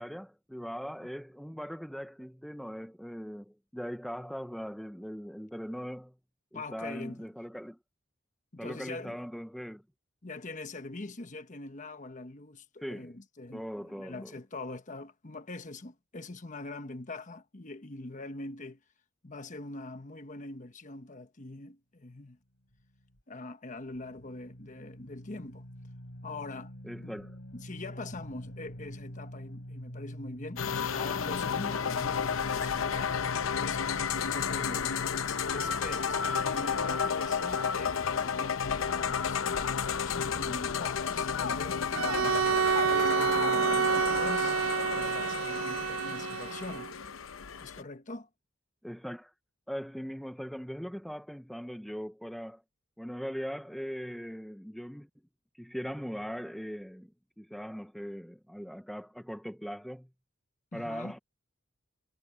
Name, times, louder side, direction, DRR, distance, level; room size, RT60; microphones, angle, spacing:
voice 1, 0.0-6.1 6.5-7.8 8.6-9.8 12.8-13.1 13.5-14.4 26.8-27.4 48.8-49.3 49.7-52.6 53.0-55.1 55.5-57.1 57.4-60.1 60.7-61.2, equal, ahead, 0.6 m, -40 dB
voice 2, 6.5-7.3 8.5-9.2 10.2-18.8 19.2-22.4 23.3-25.7 26.2-26.7 27.0-27.1 27.5-30.6 30.9-33.2 33.6-33.8 34.3-35.0 35.5-42.4 42.8-46.9 47.6-48.3 60.7-61.1, left 2 dB, 40° left, 1.2 m, -43 dB
sound 1, 22.7-23.2 23.9-38.8, equal, 70° left, 6.7 m, -46 dB
sound 2, 30.6-47.8, left 6 dB, 90° left, 0.7 m, -32 dB
Bowed string instrument, 41.9-46.9, right 7 dB, 85° right, 0.4 m, -28 dB
head